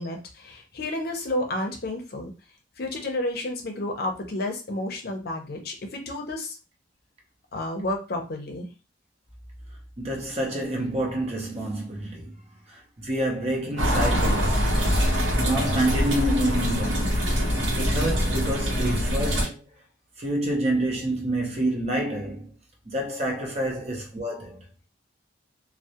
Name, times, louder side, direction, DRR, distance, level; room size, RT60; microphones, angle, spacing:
voice 1, 0.0-2.3 2.8-6.6 7.5-8.7, left 1 dB, 55° left, 0.6 m, -31 dB
voice 2, 10.0-12.4 12.7-19.6 20.2-22.5 22.9-24.6, right 1 dB, 35° right, 0.7 m, -28 dB
sound 1, 13.8-19.5, equal, 85° right, 0.8 m, -24 dB
2.3 x 2.0 x 2.8 m
head